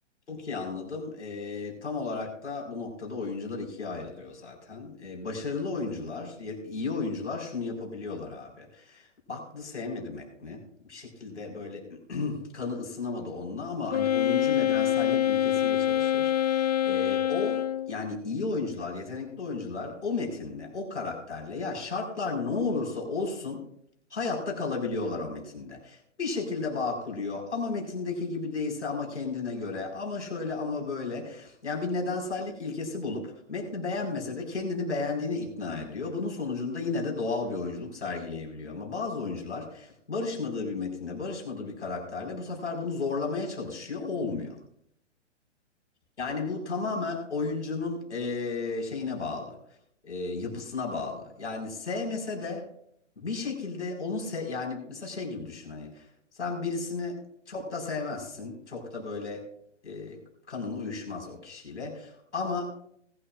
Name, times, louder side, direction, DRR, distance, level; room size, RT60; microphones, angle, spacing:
voice 1, 0.3-10.6 10.9-17.6 17.9-23.6 24.1-44.5 46.2-49.6 50.0-52.7 53.2-56.1 56.3-57.2 57.5-59.5 59.8-60.2 60.5-62.7, left 4 dB, 70° left, 1 dB, 4.9 m, -33 dB
Wind instrument woodwind instrument, 13.9-18.0, left 11 dB, 35° left, 0.5 m, -25 dB
20.5 x 12.0 x 2.4 m, 0.70 s
figure-of-eight pair, 125°, 36 cm